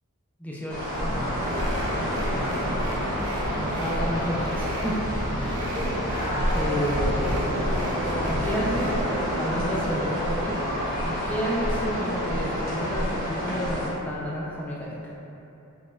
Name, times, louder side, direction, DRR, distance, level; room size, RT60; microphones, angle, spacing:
voice 1, 0.4-0.9 2.4-2.7 3.6-5.0 5.4-5.6 6.5-7.7 8.2-10.6 11.0-15.1, equal, 5° left, -5 dB, 0.3 m, -31 dB
sound 1, 0.7-13.9, equal, 45° right, 0.9 m, -28 dB
sound 2, 0.9-9.0, equal, 75° right, 0.4 m, -34 dB
4.0 x 2.1 x 2.2 m, 2.9 s
head